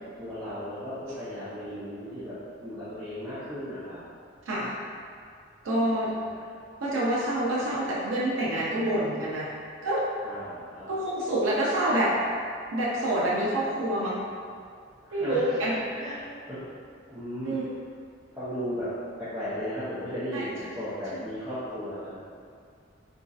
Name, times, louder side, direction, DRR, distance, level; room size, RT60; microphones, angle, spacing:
voice 1, 0.2-4.0 6.2-6.3 10.2-10.9 15.0-16.2 16.5-16.6 17.1-17.6 18.3-18.9 19.2-22.2, equal, 15° right, -16 dB, 0.6 m, -36 dB
voice 2, 5.6-6.1 6.8-9.5 9.8-10.0 10.9-12.1 12.7-14.2 15.1-15.8 17.4-17.7 20.3-20.5 21.1-21.2, right 1 dB, 85° right, -6 dB, 0.4 m, -27 dB
3.0 x 2.6 x 2.4 m, 2.2 s
head